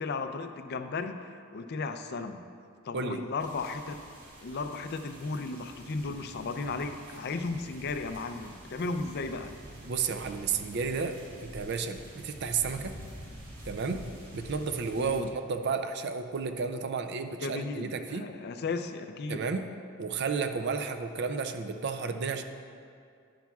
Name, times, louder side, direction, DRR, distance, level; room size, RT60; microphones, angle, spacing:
voice 1, 0.0-2.4 2.8-4.0 4.4-9.5 15.0-15.3 17.4-19.4, left 3 dB, 50° left, 8 dB, 0.4 m, -35 dB
sound 1, 3.4-15.2, right 1 dB, 85° right, 2.2 m, -47 dB
voice 2, 9.8-13.0 13.7-14.1 14.3-18.3 19.3-19.7 20.0-22.4, right 5 dB, 55° right, 8 dB, 0.5 m, -32 dB
10.5 x 10.0 x 2.4 m, 2.3 s
head